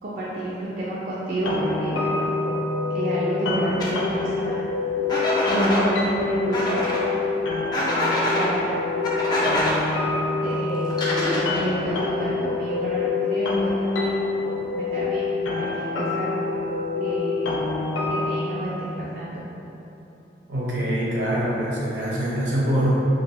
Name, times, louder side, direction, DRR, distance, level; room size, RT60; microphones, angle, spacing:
voice 1, 0.0-2.3 2.9-4.6 5.5-7.1 8.3-8.8 9.4-9.7 10.4-14.1 14.7-15.3 15.6-16.3 17.0-17.6 18.1-19.3, right 1 dB, 50° right, -8 dB, 0.4 m, -30 dB
sound 1, 1.4-18.4, left 3 dB, 90° left, 0.4 m, -26 dB
sound 2, 3.8-3.9 5.1-5.8 6.5-7.0 7.7-8.5 9.0-9.7 10.9-11.7, left 1 dB, 20° left, 0.4 m, -24 dB
voice 2, 20.5-23.0, equal, 75° right, -6 dB, 0.8 m, -24 dB
3.4 x 2.6 x 2.9 m, 2.9 s
head